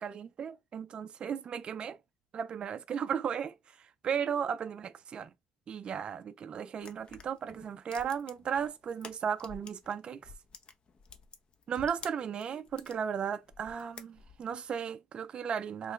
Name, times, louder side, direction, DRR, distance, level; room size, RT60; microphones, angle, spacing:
voice 1, 0.0-2.0 2.3-5.3 5.7-10.3 11.7-15.9, right 7 dB, 40° right, 0.3 m, -35 dB
sound 1, 6.8-9.9 10.2-13.0 13.5-14.6, left 5 dB, 35° left, 0.6 m, -50 dB
3.2 x 2.2 x 3.7 m
supercardioid pair, 85°, 3 cm